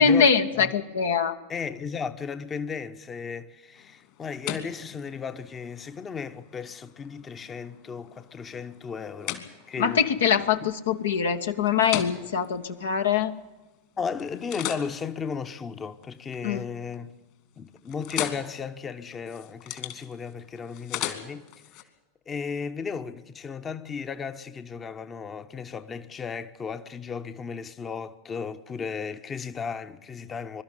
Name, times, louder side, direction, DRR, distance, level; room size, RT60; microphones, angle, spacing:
voice 1, 0.0-1.4 9.8-13.3 16.4-16.6, left 6 dB, 70° left, 1.2 m, -23 dB
voice 2, 1.5-10.1 10.6-10.7 14.0-17.1 17.6-21.5 22.3-30.6, left 6 dB, 25° left, 1.0 m, -35 dB
sound 1, 3.8-13.8 14.2-16.5 16.8-17.3 17.5-21.8, left 13 dB, 50° left, 2.6 m, -39 dB
23.0 x 13.0 x 10.0 m
figure-of-eight pair, 85°, 0 cm